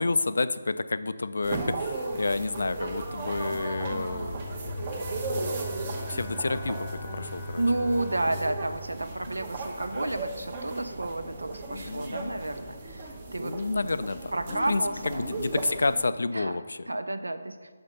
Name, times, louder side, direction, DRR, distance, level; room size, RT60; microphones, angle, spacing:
voice 1, 0.0-4.7 6.1-7.6 11.7-12.3 13.4-16.9, left 3 dB, 70° left, 14 dB, 0.3 m, -30 dB
sound 1, 1.4-16.0, right 3 dB, 35° right, 0.9 m, -36 dB
sound 2, 2.4-13.9, left 1 dB, 60° right, 1.1 m, -43 dB
Bowed string instrument, 4.7-10.0, equal, 10° left, 0.7 m, -40 dB
voice 2, 7.6-13.5 14.3-15.2 16.3-17.7, right 2 dB, 85° right, 10 dB, 0.5 m, -31 dB
5.7 x 5.4 x 5.2 m, 1.5 s
figure-of-eight pair, 155°, 0 cm